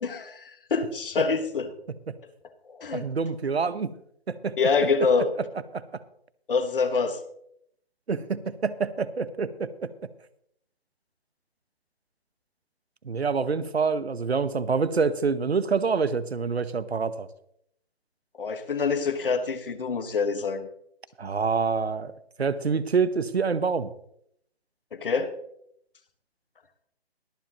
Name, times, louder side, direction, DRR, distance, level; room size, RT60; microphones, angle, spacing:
voice 1, 0.0-1.7 2.7-3.1 4.6-5.3 6.5-7.2 18.4-20.7 24.9-25.3, left 5 dB, 60° left, 9 dB, 1.5 m, -26 dB
voice 2, 2.9-3.9 4.3-4.9 5.7-6.0 8.1-9.9 13.0-17.3 21.2-22.1 22.4-23.9, right 5 dB, 80° right, 15 dB, 1.0 m, -26 dB
22.0 x 7.5 x 3.0 m, 0.71 s
figure-of-eight pair, 145°, 31 cm